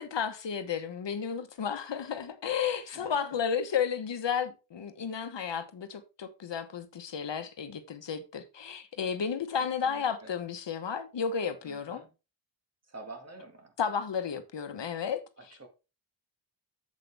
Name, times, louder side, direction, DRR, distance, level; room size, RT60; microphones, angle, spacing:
voice 1, 0.0-12.0 13.8-15.2, left 7 dB, 65° left, 1.1 m, -33 dB
voice 2, 9.8-10.3 11.6-12.1 12.9-13.7 15.4-15.7, right 3 dB, 30° right, 2.1 m, -48 dB
8.0 x 7.5 x 3.4 m
wide cardioid pair, 150°, 47 cm